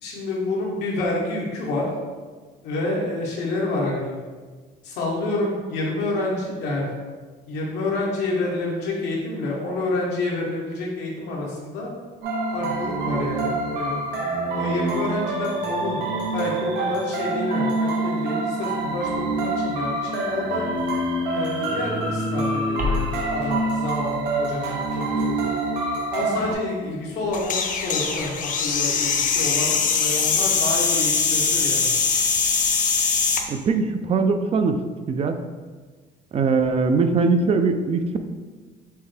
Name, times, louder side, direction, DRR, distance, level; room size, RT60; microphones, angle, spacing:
voice 1, 0.0-1.9 2.6-4.1 4.8-6.9 7.5-11.9 12.5-14.0 14.5-16.0 16.3-20.7 21.3-25.5 26.1-31.9, left 2 dB, 90° left, -2 dB, 1.1 m, -28 dB
sound 1, 12.2-26.5, right 2 dB, 85° right, 0.8 m, -26 dB
sound 2, 22.8-27.6, left 3 dB, 55° right, 0.8 m, -35 dB
sound 3, 27.3-33.4, left 5 dB, 50° left, 0.5 m, -22 dB
voice 2, 33.5-34.8 35.1-35.3 36.3-38.2, right 4 dB, 35° right, 7 dB, 0.4 m, -21 dB
6.5 x 2.2 x 3.2 m, 1.4 s
cardioid pair, 110°, 17 cm